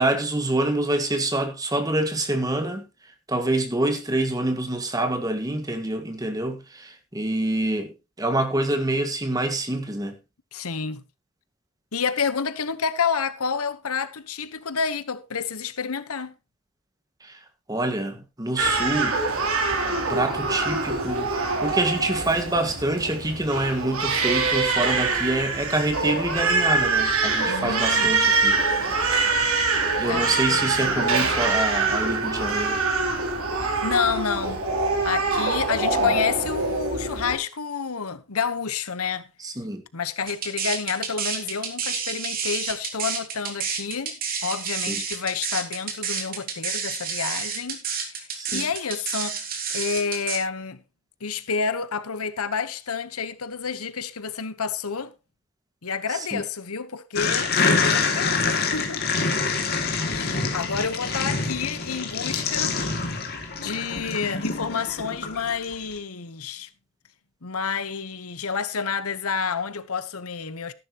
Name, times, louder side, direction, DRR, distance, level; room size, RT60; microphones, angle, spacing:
voice 1, 0.0-2.8 3.3-10.2 17.2-17.4 17.7-19.2 20.1-28.6 30.0-32.8 39.4-39.8 44.7-44.9 48.3-48.7 56.1-56.4, right 1 dB, 15° right, 1.8 m, -26 dB
voice 2, 10.5-11.0 11.9-16.3 27.5-28.1 30.1-31.4 33.8-34.7 35.0-39.2 39.9-44.2 44.4-49.5 49.7-50.8 51.2-55.1 55.8-59.2 60.1-62.8 63.5-66.7 67.4-70.7, left 6 dB, 85° left, 1.1 m, -29 dB
Crying sobbing, 18.6-37.4, right 3 dB, 80° right, 3.3 m, -24 dB
sound 1, 40.3-50.4, right 6 dB, 40° right, 2.9 m, -29 dB
sound 2, 57.1-65.7, left 4 dB, 45° left, 2.4 m, -26 dB
14.0 x 11.5 x 3.0 m
head